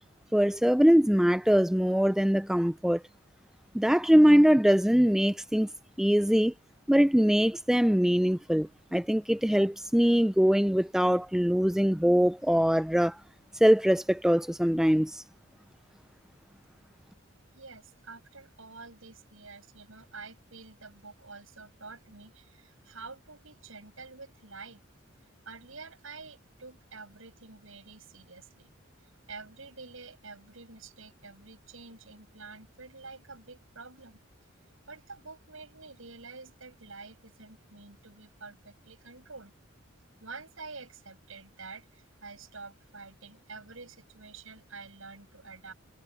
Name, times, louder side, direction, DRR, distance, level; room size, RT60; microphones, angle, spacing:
voice 1, 0.3-3.0 3.7-5.7 6.0-6.5 6.9-13.1 13.6-15.2, equal, ahead, 0.3 m, -22 dB
voice 2, 17.5-24.8 25.5-28.7 29.3-34.2 34.9-39.5 40.2-45.7, right 4 dB, 75° right, 6.9 m, -48 dB
head